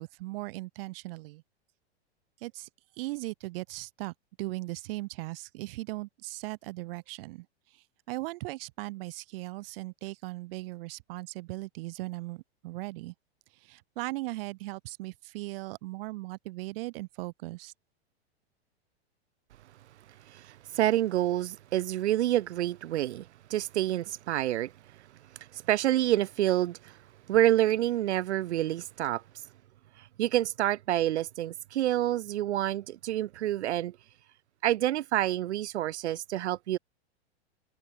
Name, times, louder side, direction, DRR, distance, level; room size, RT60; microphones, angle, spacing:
voice 1, 0.0-1.4 2.4-2.7 3.0-4.1 4.4-7.5 8.1-13.1 13.7-17.7, right 21 dB, 55° right, 2.1 m, -38 dB
voice 2, 20.3-23.2 23.5-24.7 25.5-27.0 27.3-29.2 30.0-33.9 34.6-36.8, right 13 dB, 90° right, 0.5 m, -28 dB
hypercardioid pair, 120°, 33 cm